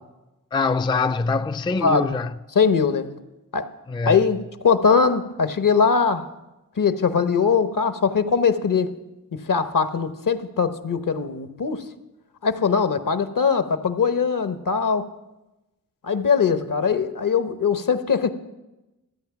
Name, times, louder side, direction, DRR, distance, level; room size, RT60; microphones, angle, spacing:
voice 1, 0.5-2.3 3.9-4.2, left 4 dB, 15° left, 0.3 m, -23 dB
voice 2, 2.5-3.1 3.5-3.7 4.0-4.4 4.6-6.2 6.8-8.9 9.3-11.8 12.4-15.1 16.0-18.3, left 5 dB, 65° left, 0.9 m, -21 dB
13.5 x 8.7 x 5.8 m
cardioid pair, 40°, 34 cm